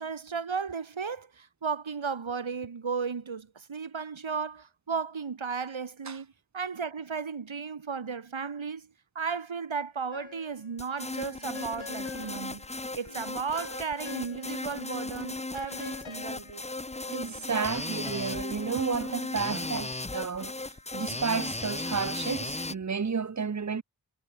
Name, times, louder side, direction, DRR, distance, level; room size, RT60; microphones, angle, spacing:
voice 1, 0.0-12.7 12.9-16.6, right 5 dB, 75° right, 3.1 m, -35 dB
sound 1, 10.1-10.8 11.0-14.8 15.0-18.3, left 6 dB, 80° left, 2.7 m, -47 dB
sound 2, 10.8-22.7, left 2 dB, 15° left, 0.8 m, -36 dB
voice 2, 17.1-23.8, right 5 dB, 35° right, 0.9 m, -32 dB
cardioid pair, 50°, 47 cm